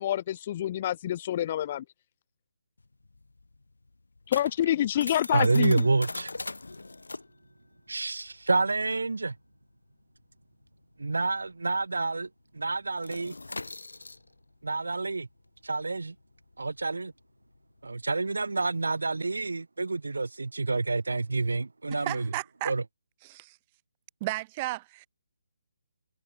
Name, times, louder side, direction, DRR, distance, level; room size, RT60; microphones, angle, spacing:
voice 1, 0.0-1.8 4.3-5.9, left 11 dB, 35° left, 0.5 m, -27 dB
sound 1, 2.8-11.8 12.0-12.3 12.6-18.3, left 3 dB, 70° left, 4.7 m, -42 dB
voice 2, 5.3-6.3 7.9-9.3 11.0-12.3 12.5-13.4 14.6-15.3 15.6-16.1 16.6-17.1 17.8-22.3 22.6-22.8, right 3 dB, 70° right, 2.6 m, -28 dB
voice 3, 21.9-22.7 23.2-23.6 24.2-25.1, right 20 dB, 25° right, 3.0 m, -34 dB
figure-of-eight pair, 145°, 0 cm